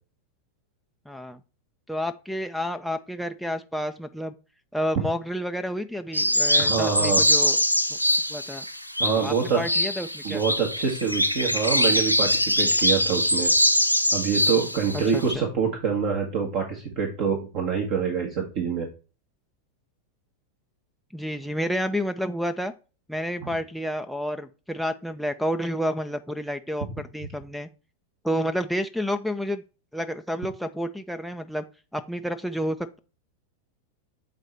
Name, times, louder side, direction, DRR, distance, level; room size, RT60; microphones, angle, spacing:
voice 1, 1.1-1.4 1.9-4.3 4.7-7.6 7.9-8.0 8.3-8.6 9.2-10.4 15.1-15.2 21.1-22.7 23.1-27.7 28.2-29.6 29.9-31.6 31.9-33.0, equal, ahead, 5 dB, 0.5 m, -30 dB
sound 1, 6.1-15.4, left 1 dB, 90° left, 0.6 m, -23 dB
voice 2, 6.6-7.2 9.0-9.8 10.2-13.5 14.1-18.9, right 6 dB, 45° right, 1 dB, 1.5 m, -26 dB
8.0 x 4.1 x 4.4 m, 0.33 s
figure-of-eight pair, 90°, 0 cm